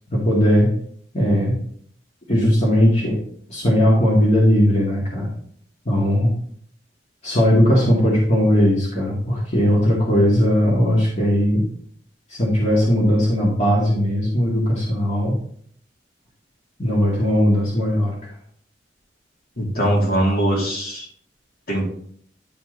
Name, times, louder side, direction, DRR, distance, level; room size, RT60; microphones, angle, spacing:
voice 1, 0.1-0.7 1.1-1.6 2.3-3.2 3.5-5.3 5.9-6.3 7.2-11.6 12.3-15.3 16.8-18.3, equal, 40° left, -6 dB, 2.0 m, -18 dB
voice 2, 19.6-21.0 21.7-21.9, right 1 dB, 55° left, -3 dB, 2.6 m, -21 dB
10.5 x 4.4 x 3.9 m, 0.62 s
head